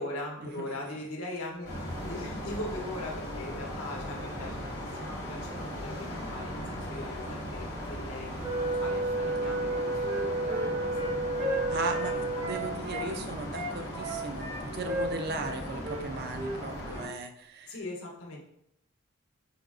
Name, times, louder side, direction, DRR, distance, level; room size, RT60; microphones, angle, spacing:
voice 1, 0.0-8.4 8.7-11.2 12.0-12.7 13.1-13.2 17.7-18.4, left 2 dB, 85° left, -1 dB, 0.8 m, -41 dB
sound 1, 1.6-17.1, equal, 50° left, 1.1 m, -38 dB
Wind instrument woodwind instrument, 8.4-12.8, right 2 dB, 10° right, 0.7 m, -31 dB
Wind instrument woodwind instrument 2, 9.6-13.1 13.5-15.6 15.8-16.0 16.3-16.6 16.9-17.1, equal, 65° right, 1.1 m, -35 dB
voice 2, 11.7-12.1 12.4-17.8, right 3 dB, 50° right, 6 dB, 0.4 m, -37 dB
4.8 x 2.4 x 2.4 m, 0.73 s
head